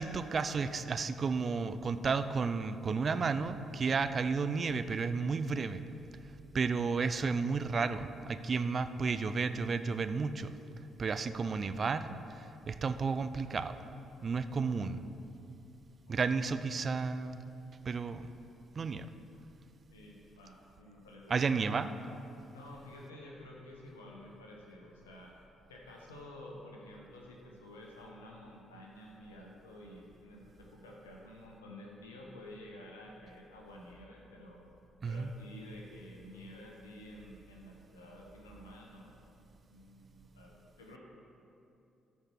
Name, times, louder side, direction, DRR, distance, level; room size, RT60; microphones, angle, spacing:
voice 1, 0.0-5.8 6.5-10.6 11.0-13.8 14.2-15.0 16.1-17.4 17.8-18.3 18.8-19.1 21.3-21.9 35.0-35.3, right 5 dB, 40° right, 11 dB, 0.4 m, -32 dB
voice 2, 16.1-16.4 19.9-21.6 22.5-25.4 25.7-34.6 35.1-39.2 39.7-41.0, left 1 dB, 80° left, -1 dB, 1.0 m, -51 dB
13.5 x 4.7 x 4.6 m, 2.7 s
figure-of-eight pair, 45°, 0 cm